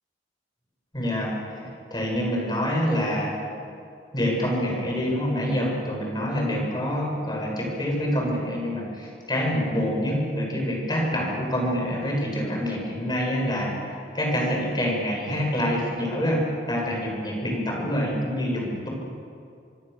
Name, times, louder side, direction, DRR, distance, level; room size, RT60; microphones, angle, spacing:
voice 1, 0.9-3.3 4.1-13.8 14.1-16.4 16.7-18.9, equal, 25° left, -1 dB, 6.9 m, -26 dB
26.0 x 24.0 x 7.0 m, 2.4 s
head